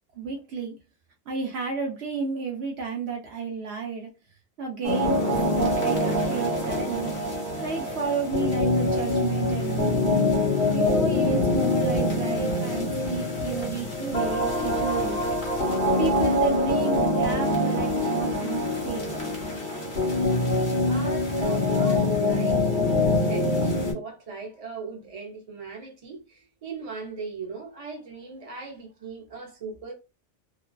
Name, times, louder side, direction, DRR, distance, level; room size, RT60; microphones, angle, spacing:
voice 1, 0.2-0.7 1.3-4.1 4.6-7.1 7.6-10.2 10.7-15.2 16.0-19.3, right 5 dB, 65° right, 0.8 m, -32 dB
sound 1, 4.8-23.9, left 1 dB, 55° left, 1.1 m, -24 dB
voice 2, 20.8-22.8 23.0-29.9, right 4 dB, 35° right, 0.7 m, -38 dB
2.5 x 2.3 x 2.2 m
omnidirectional pair, 1.2 m